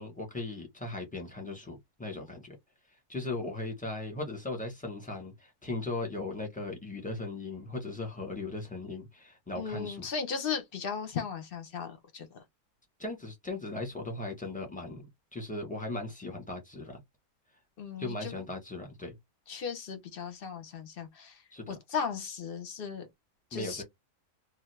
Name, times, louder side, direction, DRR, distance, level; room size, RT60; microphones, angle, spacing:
voice 1, 0.0-2.5 3.1-10.1 13.0-15.0 15.3-17.0 18.0-19.2 21.5-21.8 23.5-23.8, left 2 dB, 5° left, 1.0 m, -38 dB
voice 2, 9.6-12.4 17.8-18.4 19.5-23.1 23.5-23.8, left 6 dB, 50° left, 0.8 m, -36 dB
2.7 x 2.4 x 3.3 m
omnidirectional pair, 1.6 m